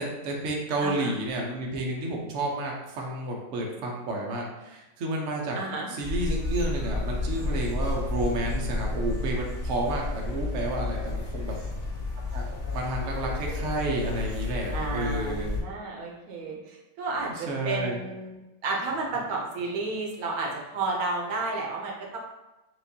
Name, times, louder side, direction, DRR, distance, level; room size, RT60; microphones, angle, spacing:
voice 1, 0.0-5.6 5.9-11.5 12.3-15.6 17.3-18.0, right 1 dB, 60° right, -1 dB, 1.0 m, -31 dB
voice 2, 0.8-1.2 5.6-5.9 14.7-18.4 18.6-22.2, right 3 dB, 80° right, -1 dB, 1.2 m, -32 dB
sound 1, 6.0-15.6, left 2 dB, 65° left, 1.4 m, -31 dB
6.1 x 2.4 x 2.7 m, 1.0 s
omnidirectional pair, 1.5 m